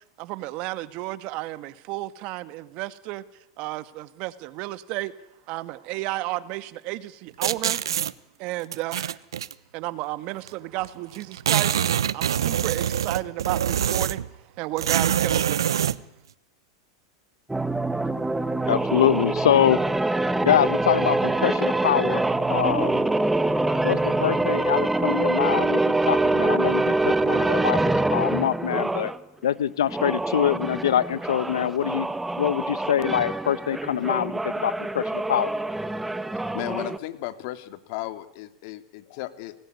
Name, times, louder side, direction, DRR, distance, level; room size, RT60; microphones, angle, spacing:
voice 1, 0.2-3.2 3.6-5.1 5.5-7.8 8.4-9.2 9.7-11.8 12.1-14.2 14.6-15.6, right 18 dB, 50° right, 1.7 m, -32 dB
sound 1, 7.4-8.1 8.7-9.5 10.5-10.6 10.8-10.9 11.1-14.3 14.8-16.0, right 9 dB, 90° right, 1.0 m, -24 dB
sound 2, 17.5-29.2 29.8-37.0, right 2 dB, 5° right, 1.3 m, -25 dB
voice 2, 18.7-19.8 20.4-22.2 22.5-23.0 23.8-27.8 28.1-29.1 29.4-32.1 32.4-35.5, left 10 dB, 85° left, 1.2 m, -24 dB
voice 3, 36.5-39.5, left 15 dB, 60° left, 2.6 m, -35 dB
29.0 x 20.0 x 9.6 m
hypercardioid pair, 120°, 2 cm